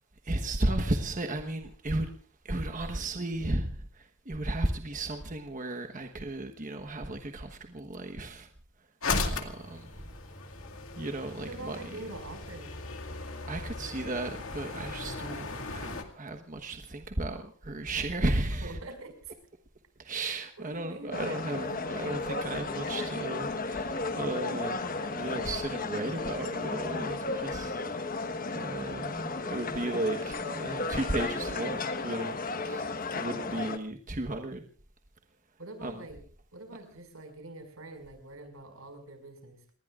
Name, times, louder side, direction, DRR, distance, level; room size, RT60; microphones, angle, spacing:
voice 1, 0.2-2.1 2.4-8.5 9.2-9.9 11.0-11.8 13.5-18.8 20.0-28.2 28.5-34.6 35.8-36.1, right 2 dB, 40° right, 5 dB, 1.2 m, -34 dB
sound 1, 9.0-16.0, left 3 dB, 85° left, 2.2 m, -37 dB
voice 2, 11.4-12.8 17.9-18.0 18.6-19.4 20.2-21.7 35.6-36.2 36.5-39.6, right 2 dB, 90° right, 6 dB, 5.7 m, -45 dB
sound 2, 21.1-33.8, left 3 dB, 45° left, 1.2 m, -34 dB
29.5 x 20.0 x 2.5 m, 0.41 s
head